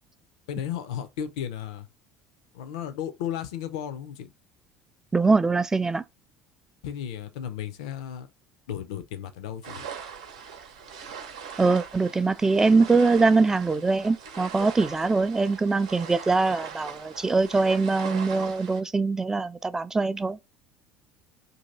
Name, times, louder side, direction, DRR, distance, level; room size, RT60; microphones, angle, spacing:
voice 1, 0.5-1.9 2.5-4.3 6.8-8.3 8.7-9.8, left 9 dB, 70° left, 0.5 m, -34 dB
voice 2, 5.1-6.0 11.6-20.4, right 3 dB, 15° right, 0.4 m, -23 dB
sound 1, 9.6-18.8, right 7 dB, 80° right, 0.8 m, -40 dB
2.8 x 2.7 x 3.9 m
hypercardioid pair, 65°, 3 cm